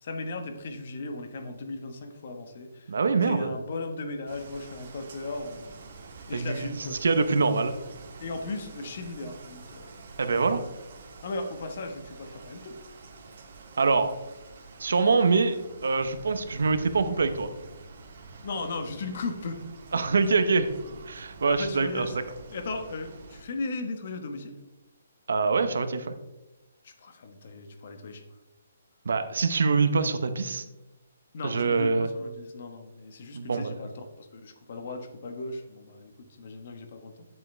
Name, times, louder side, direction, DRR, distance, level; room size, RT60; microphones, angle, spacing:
voice 1, 0.0-2.9 3.2-5.8 6.3-7.0 8.2-10.0 11.2-12.8 18.4-19.6 21.5-22.2 22.5-24.6 26.8-28.2 31.3-37.3, left 3 dB, 50° left, 6 dB, 1.2 m, -36 dB
voice 2, 2.9-3.5 6.3-6.7 7.0-7.7 10.2-10.6 13.8-14.1 14.8-15.6 15.8-17.5 19.9-20.7 21.1-22.1 25.3-26.1 29.0-30.6 31.4-32.1 33.3-33.7, right 4 dB, 80° right, 10 dB, 0.9 m, -24 dB
sound 1, 4.3-23.4, right 4 dB, 55° right, 1.6 m, -47 dB
8.6 x 7.0 x 3.3 m, 1.0 s
hypercardioid pair, 160°, 0 cm